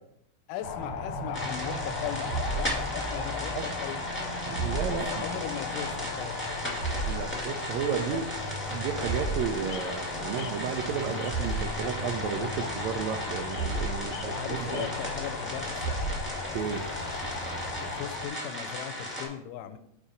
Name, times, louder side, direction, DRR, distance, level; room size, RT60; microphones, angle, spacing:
voice 1, 0.5-6.5 8.1-8.2 14.1-16.1 17.8-19.8, left 11 dB, 85° left, 10 dB, 2.1 m, -39 dB
sound 1, 0.6-18.3, left 6 dB, 70° left, 1.5 m, -37 dB
sound 2, 0.6-17.9, right 3 dB, 65° right, 2.1 m, -37 dB
sound 3, 1.3-19.3, equal, 5° left, 1.3 m, -37 dB
voice 2, 4.5-5.4 7.0-8.3 8.7-14.9 16.5-16.9, right 7 dB, 90° right, 6 dB, 1.5 m, -33 dB
5.5 x 4.9 x 5.1 m, 0.76 s
omnidirectional pair, 3.7 m